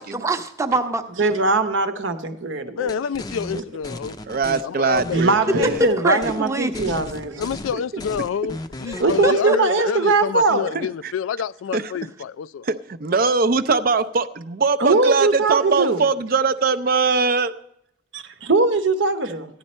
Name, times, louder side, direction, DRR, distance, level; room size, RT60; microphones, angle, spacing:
voice 1, 0.0-1.0 6.0-7.0 8.9-9.6, right 3 dB, 15° right, 0.7 m, -25 dB
voice 2, 1.2-2.9 3.5-3.6 5.1-7.4 9.0-10.8 14.8-16.1 18.5-19.4, right 3 dB, 70° right, 0.9 m, -20 dB
voice 3, 2.8-4.2 4.6-5.9 7.4-12.7, left 7 dB, 90° left, 0.3 m, -28 dB
sound 1, 2.9-4.6 5.0-5.9 6.2-6.4 6.7-9.3, left 1 dB, 20° left, 0.5 m, -35 dB
voice 4, 4.3-5.8 10.7-11.1 11.7-11.9 12.7-12.8 13.0-17.5, right 4 dB, 50° right, 0.5 m, -21 dB
14.0 x 10.5 x 4.3 m
head